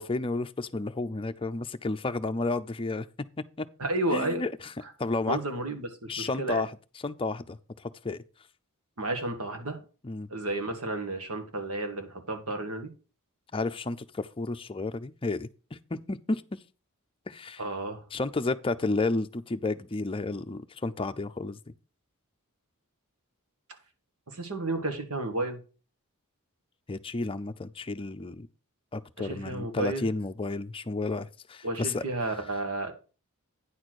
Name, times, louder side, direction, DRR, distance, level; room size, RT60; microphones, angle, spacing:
voice 1, 0.0-3.1 3.6-3.7 4.1-4.7 5.0-5.4 6.1-6.7 7.0-8.2 10.0-10.3 13.5-16.6 17.3-17.6 18.1-21.6 26.9-28.5 28.9-32.0, left 3 dB, 25° left, 0.5 m, -32 dB
voice 2, 3.8-4.4 5.3-6.6 9.0-9.8 10.3-12.9 17.6-18.0 24.3-25.6 29.2-30.1 31.6-32.9, right 2 dB, 75° right, 1.8 m, -32 dB
9.6 x 4.3 x 6.4 m
head